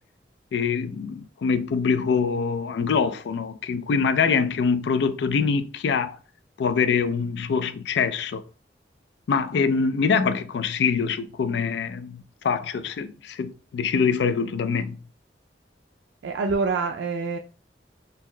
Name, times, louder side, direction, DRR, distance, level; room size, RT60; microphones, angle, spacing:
voice 1, 0.5-6.2 6.6-8.4 9.3-15.0, left 5 dB, 70° left, 0.3 m, -24 dB
voice 2, 16.2-17.4, right 4 dB, 85° right, 0.3 m, -26 dB
2.7 x 2.1 x 3.7 m
head